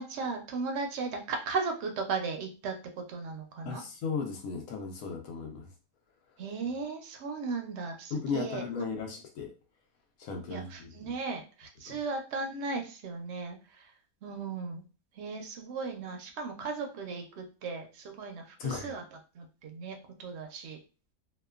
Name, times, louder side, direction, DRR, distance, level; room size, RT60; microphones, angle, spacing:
voice 1, 0.0-2.7 3.1-3.8 6.4-8.6 10.5-13.6 14.2-14.8 15.2-19.0 19.4-20.8, right 4 dB, 65° right, 3 dB, 0.7 m, -36 dB
voice 2, 3.7-5.7 8.1-9.5 10.2-11.1 11.9-12.0 18.6-18.9, left 5 dB, 75° left, 3 dB, 1.1 m, -36 dB
2.8 x 2.2 x 2.3 m, 0.34 s
omnidirectional pair, 1.5 m